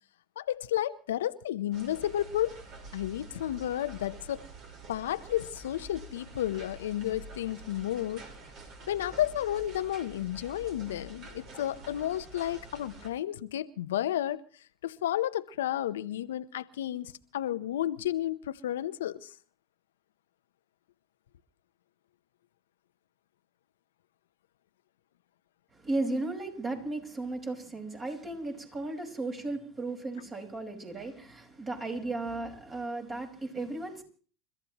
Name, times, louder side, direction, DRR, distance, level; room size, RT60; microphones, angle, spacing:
voice 1, 0.4-2.6 2.9-4.4 4.9-8.2 8.9-14.4 14.8-19.3, left 12 dB, 80° left, 0.8 m, -32 dB
sound 1, 1.7-13.1, right 1 dB, 50° right, 4.5 m, -48 dB
voice 2, 25.7-34.0, right 2 dB, 30° right, 5.1 m, -35 dB
29.5 x 14.0 x 3.0 m
hypercardioid pair, 85°, 0 cm